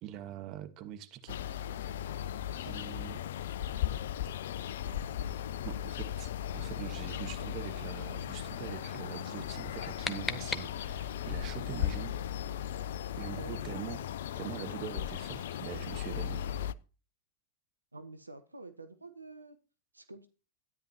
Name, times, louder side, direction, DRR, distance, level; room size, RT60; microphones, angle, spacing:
voice 1, 0.0-1.4 2.6-3.2 5.6-12.2 13.2-14.1 14.3-16.4, right 11 dB, 40° right, 9 dB, 1.4 m, -43 dB
sound 1, 1.3-16.7, left 10 dB, 60° left, 0.4 m, -37 dB
sound 2, 9.5-11.2, left 4 dB, 15° left, 0.9 m, -39 dB
voice 2, 13.3-13.6 17.9-19.6 19.9-20.3, right 3 dB, 80° right, 10 dB, 0.9 m, -48 dB
13.0 x 9.9 x 2.9 m, 0.33 s
figure-of-eight pair, 90°, 0 cm